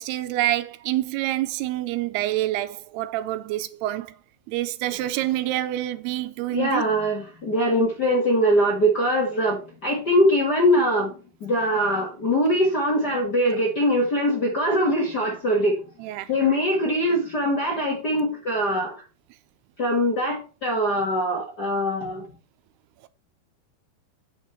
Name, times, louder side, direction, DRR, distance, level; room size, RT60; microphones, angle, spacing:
voice 1, 0.0-4.2 4.5-6.8 16.0-16.3, right 15 dB, 85° right, 2.7 m, -27 dB
voice 2, 6.5-15.8 16.3-19.0 19.8-22.3, equal, 40° left, 1.5 m, -22 dB
8.8 x 5.9 x 5.5 m
omnidirectional pair, 4.6 m